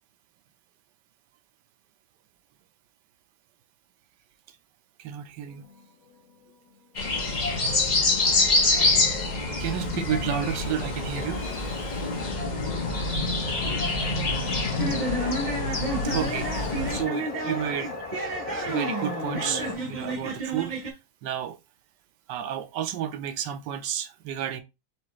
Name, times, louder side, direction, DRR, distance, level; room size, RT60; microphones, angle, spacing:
voice 1, 5.0-5.6 9.6-12.0 16.0-18.0 18.7-20.8 21.2-21.6 22.3-24.6, right 10 dB, 70° right, 1.1 m, -32 dB
sound 1, 5.5-8.0 8.4-8.5 9.2-19.8, left 4 dB, 75° left, 2.0 m, -40 dB
sound 2, 7.0-17.0, left 2 dB, 45° left, 0.6 m, -26 dB
sound 3, 14.8-20.9, right 1 dB, 45° right, 0.6 m, -31 dB
5.1 x 3.2 x 3.0 m
omnidirectional pair, 2.1 m